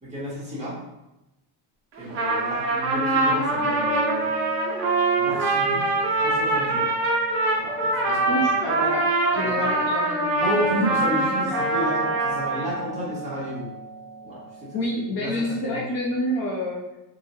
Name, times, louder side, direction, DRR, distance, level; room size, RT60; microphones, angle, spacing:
voice 1, 0.0-0.8 2.0-4.3 5.2-6.9 7.5-8.5 9.3-9.7 10.3-13.7 14.2-15.8, equal, 15° right, -8 dB, 0.8 m, -32 dB
Trumpet, 2.0-12.8, right 2 dB, 30° right, 0.3 m, -24 dB
sound 1, 2.9-14.9, right 1 dB, 10° left, 1.2 m, -37 dB
voice 2, 8.3-10.6 14.7-16.8, equal, 50° left, -4 dB, 0.6 m, -28 dB
3.6 x 2.1 x 2.6 m, 0.95 s
cardioid pair, 175°, 48 cm